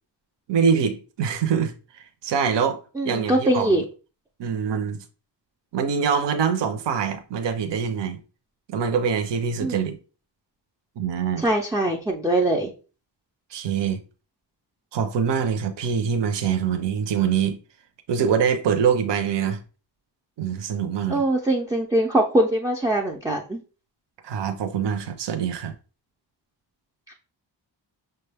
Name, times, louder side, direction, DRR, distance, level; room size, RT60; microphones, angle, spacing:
voice 1, 0.5-3.8 4.4-5.0 5.7-8.2 8.7-10.0 11.0-11.4 13.5-14.0 14.9-17.6 18.1-19.6 20.4-21.2 24.2-25.7, right 7 dB, 65° right, 0.6 m, -24 dB
voice 2, 3.0-3.8 9.6-9.9 11.4-12.7 21.1-23.6 27.1-27.2, right 1 dB, 10° right, 0.3 m, -22 dB
6.0 x 2.2 x 3.3 m
wide cardioid pair, 175°, 45 cm